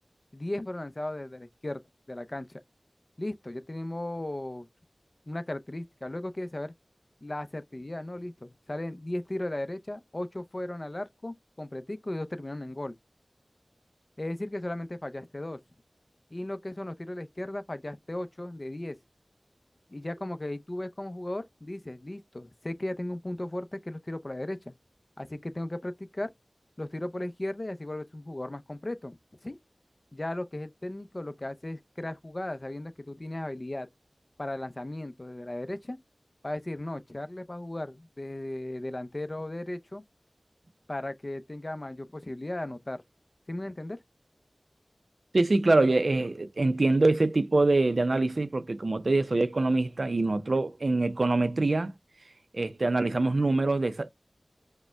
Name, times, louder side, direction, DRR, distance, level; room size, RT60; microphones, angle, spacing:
voice 1, 0.3-1.8 2.1-2.6 3.2-4.7 5.3-6.7 7.2-12.9 14.2-15.6 16.3-19.0 19.9-24.7 25.2-26.3 26.8-29.2 29.4-29.6 30.1-33.9 34.4-36.0 36.4-40.0 40.9-43.0 43.5-44.0, left 1 dB, 40° left, 0.6 m, -36 dB
voice 2, 45.3-51.9 52.5-54.1, right 2 dB, 75° right, 0.5 m, -24 dB
5.2 x 2.1 x 3.4 m
wide cardioid pair, 45°, 0 cm